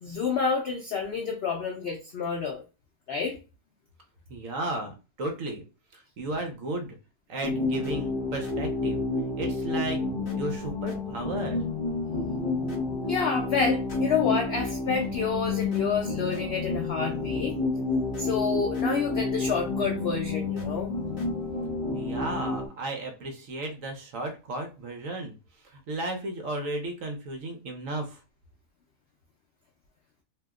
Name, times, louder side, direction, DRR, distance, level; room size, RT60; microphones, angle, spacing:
voice 1, 0.0-2.6 3.1-3.4 13.1-17.6 18.2-20.9, left 5 dB, 75° left, 2 dB, 0.5 m, -29 dB
voice 2, 4.3-5.6 5.9-6.9 7.3-9.0 9.4-10.0 10.4-11.6 21.9-25.4 25.6-28.2, right 2 dB, 60° right, 4 dB, 1.0 m, -34 dB
sound 1, 7.4-22.7, left 3 dB, 40° left, 0.8 m, -30 dB
2.8 x 2.0 x 3.5 m, 0.31 s
omnidirectional pair, 1.7 m